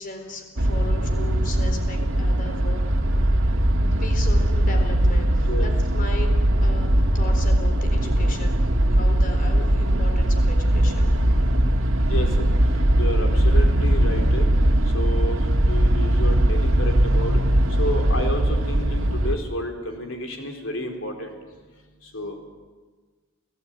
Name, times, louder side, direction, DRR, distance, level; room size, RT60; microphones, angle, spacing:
voice 1, 0.0-2.8 3.0-3.1 4.0-6.3 6.6-11.5, left 2 dB, 45° left, 5 dB, 4.0 m, -37 dB
sound 1, 0.6-19.4, right 1 dB, 75° right, 1.8 m, -20 dB
voice 2, 5.4-5.7 12.1-14.5 14.8-17.4 17.7-21.4 22.0-22.5, left 1 dB, 75° left, 3 dB, 4.4 m, -31 dB
29.5 x 18.0 x 9.2 m, 1.4 s
head